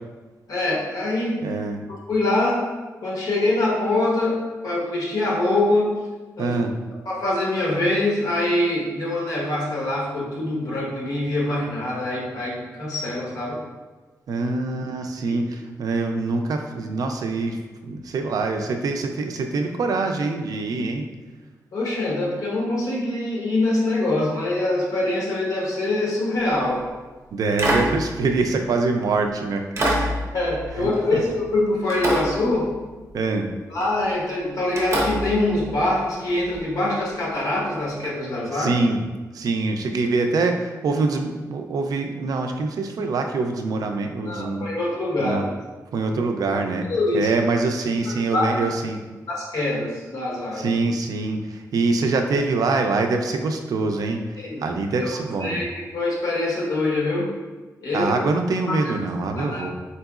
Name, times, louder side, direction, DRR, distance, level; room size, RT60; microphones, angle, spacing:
voice 1, 0.5-1.4 1.9-2.6 3.0-4.4 4.6-6.0 6.4-6.5 7.0-13.6 15.3-15.4 21.7-26.8 30.3-32.7 33.7-38.7 44.3-45.4 46.8-47.3 48.3-48.7 49.3-50.7 54.4-54.6 55.0-55.7 55.9-57.3 57.8-58.1 58.7-58.8 59.4-59.7, left 2 dB, 65° left, -4 dB, 1.2 m, -24 dB
voice 2, 1.4-1.8 6.4-6.7 14.3-21.0 27.3-30.1 30.8-30.9 33.1-33.5 38.5-39.0 39.3-44.7 45.2-45.4 45.9-46.9 47.1-49.0 50.5-55.6 57.9-59.7, right 3 dB, 70° right, 5 dB, 0.4 m, -24 dB
sound 1, 26.5-26.8 27.6-29.1 29.8-31.6 31.9-33.1 33.8-34.0 34.8-36.6 38.0-38.1, equal, 45° right, 0.8 m, -27 dB
4.3 x 3.9 x 2.4 m, 1.3 s
wide cardioid pair, 150°, 7 cm